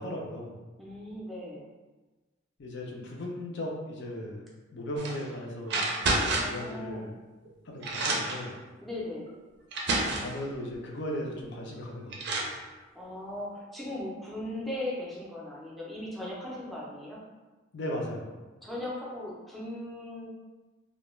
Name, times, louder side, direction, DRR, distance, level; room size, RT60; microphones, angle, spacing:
voice 1, 0.0-0.6 2.6-4.5 4.7-5.9 6.4-7.2 7.6-8.6 10.2-12.4 17.7-18.4, left 1 dB, 65° left, -1 dB, 0.5 m, -37 dB
voice 2, 0.8-1.6 6.3-7.0 8.8-9.3 12.9-17.2 18.6-20.3, left 1 dB, ahead, -6 dB, 0.5 m, -38 dB
sound 1, 5.0-5.2 5.7-6.6 7.5-7.6 7.8-8.5 9.3-9.4 9.7-10.4 11.7-11.8 12.1-12.6, right 2 dB, 60° right, 0.4 m, -29 dB
2.2 x 2.1 x 3.0 m, 1.2 s
head